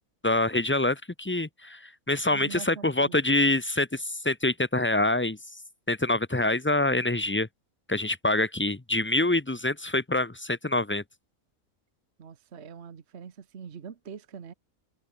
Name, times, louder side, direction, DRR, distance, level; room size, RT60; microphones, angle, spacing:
voice 1, 0.2-5.4 5.9-7.5 7.9-11.0, left 2 dB, 15° left, 0.5 m, -26 dB
voice 2, 2.3-3.2 12.2-14.5, right 6 dB, 50° right, 1.4 m, -43 dB
omnidirectional pair, 1.5 m